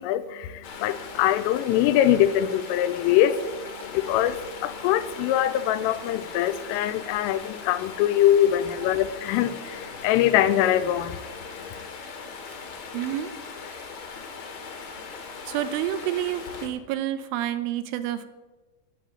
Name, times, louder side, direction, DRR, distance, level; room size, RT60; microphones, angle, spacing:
voice 1, 0.0-11.9, left 11 dB, 85° left, 3.2 m, -23 dB
Stream, 0.6-16.7, left 5 dB, 65° left, 1.9 m, -40 dB
voice 2, 12.9-13.3 15.5-18.3, right 11 dB, 80° right, 3.1 m, -29 dB
11.5 x 9.4 x 8.4 m
omnidirectional pair, 5.8 m